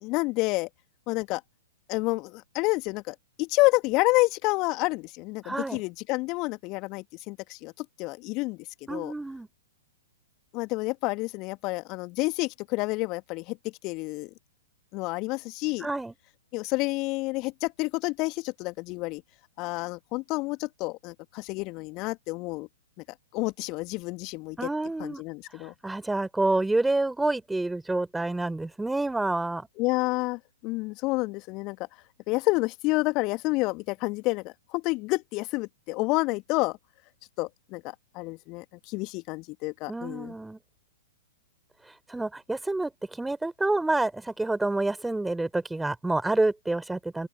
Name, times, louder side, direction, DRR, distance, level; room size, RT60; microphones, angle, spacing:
voice 1, 0.0-0.7 1.1-1.4 1.9-8.6 8.9-9.1 10.5-13.6 13.8-14.3 14.9-15.9 16.5-19.2 19.6-22.7 23.3-24.7 25.0-25.7 29.8-31.8 32.3-36.8 37.4-37.8 38.1-40.3, left 24 dB, 35° left, 2.0 m, -29 dB
voice 2, 5.4-5.8 8.9-9.5 15.8-16.1 24.6-25.2 25.8-29.7 39.9-40.6 42.1-47.3, right 2 dB, 5° right, 4.2 m, -28 dB
open air
figure-of-eight pair, 110°, 0 cm